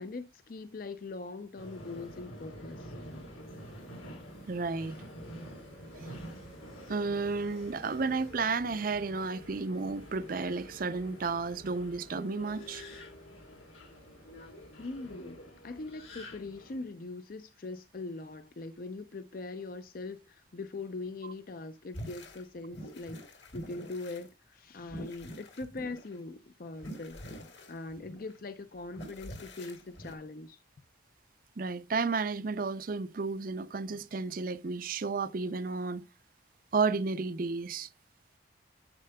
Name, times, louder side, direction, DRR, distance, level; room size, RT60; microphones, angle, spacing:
voice 1, 0.0-2.9 14.8-27.2 27.7-30.6, left 3 dB, 45° left, 0.5 m, -42 dB
Subway metro underground, 1.6-16.8, equal, 90° left, 3.5 m, -47 dB
voice 2, 4.5-5.0 5.9-6.1 6.9-12.8 31.6-36.0 36.7-37.9, right 4 dB, 45° right, 0.5 m, -32 dB
sound 1, 21.9-22.4 22.7-24.3 24.8-26.2 26.7-28.4 28.9-30.1, equal, 65° left, 2.1 m, -45 dB
9.8 x 7.6 x 2.2 m
head